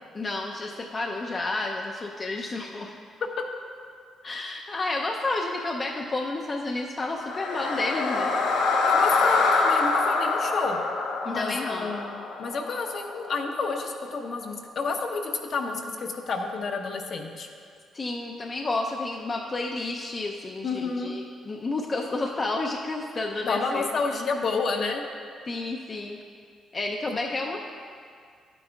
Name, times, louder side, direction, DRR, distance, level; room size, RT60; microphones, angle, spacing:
voice 1, 0.1-3.0 4.2-8.3 11.2-11.9 17.9-23.9 25.5-26.2 26.7-27.6, left 2 dB, 35° left, 0 dB, 0.5 m, -31 dB
sound 1, 7.2-13.3, left 3 dB, 90° left, 0.8 m, -25 dB
voice 2, 8.8-10.8 11.3-17.5 20.6-21.1 23.4-25.0 27.1-27.2, left 4 dB, 60° left, 2 dB, 0.9 m, -30 dB
10.5 x 9.1 x 2.3 m, 2.2 s
cardioid pair, 90°, 0 cm